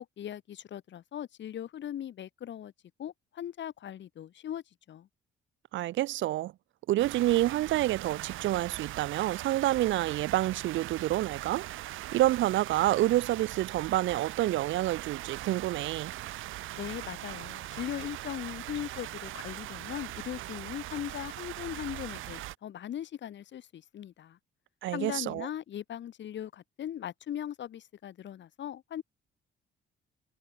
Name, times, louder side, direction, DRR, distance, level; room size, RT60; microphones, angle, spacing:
voice 1, 0.0-2.7 3.0-5.1 16.7-24.4 24.9-29.0, left 10 dB, 65° left, 2.9 m, -39 dB
voice 2, 5.7-6.5 6.9-11.7 12.1-16.1 24.8-25.5, right 15 dB, 70° right, 0.5 m, -28 dB
sound 1, 7.0-22.6, right 16 dB, 90° right, 3.3 m, -40 dB
cardioid pair, 90°, 20 cm